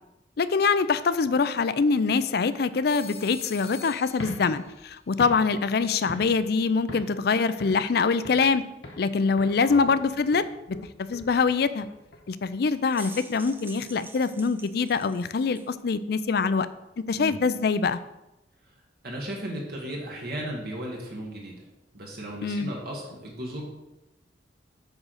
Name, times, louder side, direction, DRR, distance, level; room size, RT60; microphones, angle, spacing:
voice 1, 0.4-8.6 9.0-10.4 11.0-11.9 12.3-16.7 17.1-18.0 22.4-22.7, left 4 dB, 55° left, 14 dB, 0.4 m, -24 dB
Telephone, 2.9-4.9, left 5 dB, 35° left, 1.2 m, -44 dB
sound 1, 4.1-6.6 6.9-7.2 7.6-8.5 8.8-9.1 9.4-12.5, left 1 dB, 80° left, 1.4 m, -42 dB
sound 2, 12.7-15.7, right 3 dB, 10° right, 0.5 m, -47 dB
voice 2, 19.0-21.7 21.9-23.6, right 1 dB, 55° right, -2 dB, 1.5 m, -36 dB
8.8 x 3.9 x 6.4 m, 0.95 s
head